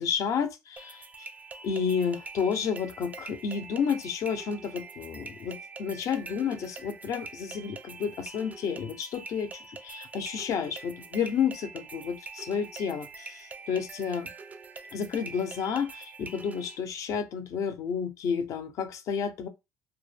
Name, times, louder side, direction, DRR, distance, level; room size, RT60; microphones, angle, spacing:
voice 1, 0.0-1.3 1.6-14.3 14.9-19.5, left 7 dB, 60° left, 0.5 m, -31 dB
sound 1, 0.8-16.8, right 4 dB, 25° right, 0.3 m, -45 dB
2.2 x 2.1 x 3.3 m
cardioid pair, 105°, 6 cm